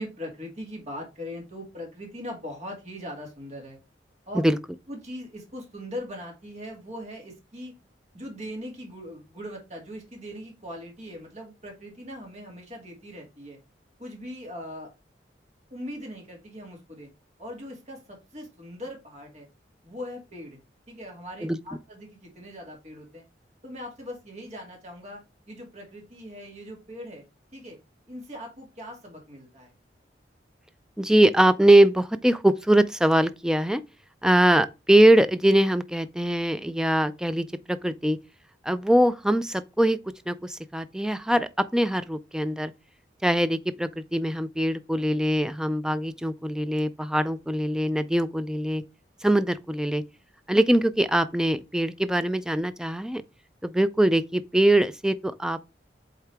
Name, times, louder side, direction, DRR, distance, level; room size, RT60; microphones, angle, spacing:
voice 1, 0.0-3.8 4.3-4.4 4.9-7.7 8.1-13.6 14.0-14.9 15.7-17.1 17.4-19.5 19.8-20.6 20.9-23.2 23.6-27.2 27.5-27.8 28.1-29.7, equal, 40° right, 2.3 m, -40 dB
voice 2, 31.0-33.8 34.2-38.2 38.6-40.0 40.3-42.7 43.2-48.8 49.2-50.0 50.5-53.2 53.6-55.7, right 1 dB, 5° right, 0.3 m, -22 dB
8.0 x 3.8 x 3.4 m
head